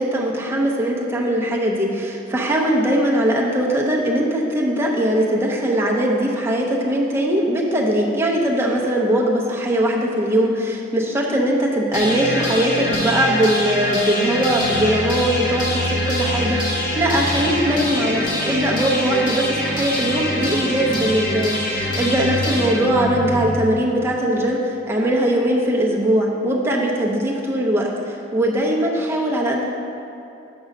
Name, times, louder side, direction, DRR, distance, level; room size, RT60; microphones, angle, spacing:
voice 1, 0.0-29.6, right 1 dB, 15° right, -4 dB, 0.7 m, -20 dB
sound 1, 11.9-23.9, left 1 dB, 45° left, 1.2 m, -24 dB
6.2 x 5.3 x 5.2 m, 2.8 s
head